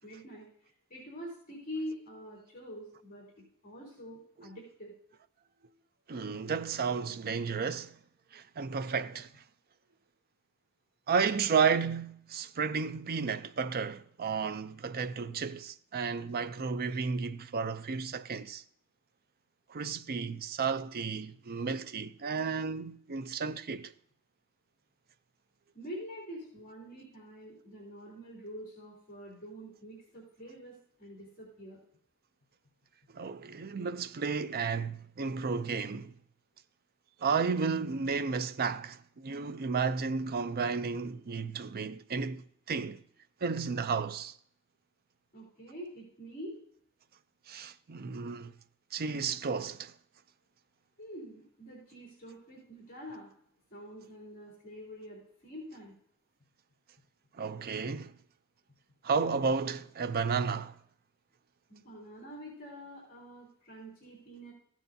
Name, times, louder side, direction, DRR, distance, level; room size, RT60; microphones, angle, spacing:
voice 1, 0.0-4.9 25.7-31.8 45.3-46.6 51.0-53.3 53.7-55.9 61.7-64.5, equal, 40° left, 3.5 m, -46 dB
voice 2, 6.1-8.0 8.3-9.3 11.1-18.6 19.7-23.9 33.1-36.1 37.2-43.0 43.4-44.4 47.5-48.5 48.9-49.9 57.3-58.1 59.0-60.8, right 5 dB, 45° right, 0.5 m, -32 dB
15.0 x 9.2 x 2.7 m
head